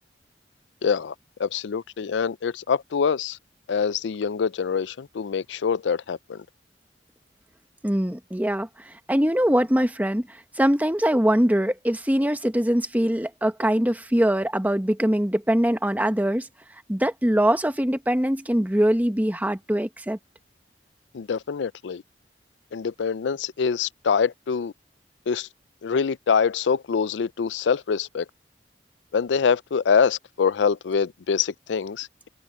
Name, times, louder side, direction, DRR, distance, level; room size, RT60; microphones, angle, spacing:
voice 1, 0.8-1.1 1.4-3.4 3.7-6.4 21.1-22.0 22.7-24.7 25.3-25.5 25.8-28.3 29.1-32.3, left 6 dB, 80° left, 0.4 m, -25 dB
voice 2, 7.8-16.5 16.9-20.2, equal, 10° right, 1.1 m, -23 dB
head